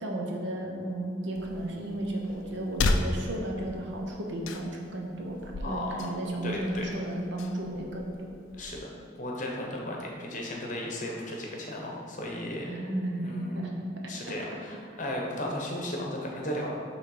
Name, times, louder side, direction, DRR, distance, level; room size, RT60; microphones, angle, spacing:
voice 1, 0.0-8.3 12.6-13.7, right 1 dB, 60° right, 0 dB, 0.8 m, -34 dB
sound 1, 1.3-8.8, left 3 dB, 75° left, 0.4 m, -35 dB
voice 2, 5.6-6.1 6.4-6.9 8.6-8.8 9.2-12.7 13.2-13.6 14.1-16.8, left 1 dB, 40° left, -1 dB, 0.8 m, -35 dB
6.3 x 3.2 x 4.8 m, 2.3 s
head